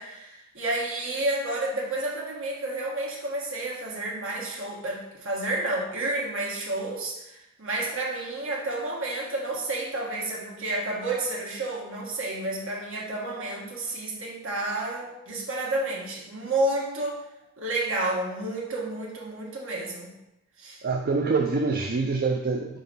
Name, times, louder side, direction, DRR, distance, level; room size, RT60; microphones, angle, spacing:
voice 1, 0.0-17.2 17.6-20.2 20.6-20.8, right 2 dB, 65° right, -2 dB, 1.4 m, -30 dB
voice 2, 20.8-22.8, right 4 dB, 45° right, 1 dB, 0.4 m, -25 dB
4.9 x 3.8 x 5.4 m, 0.88 s
head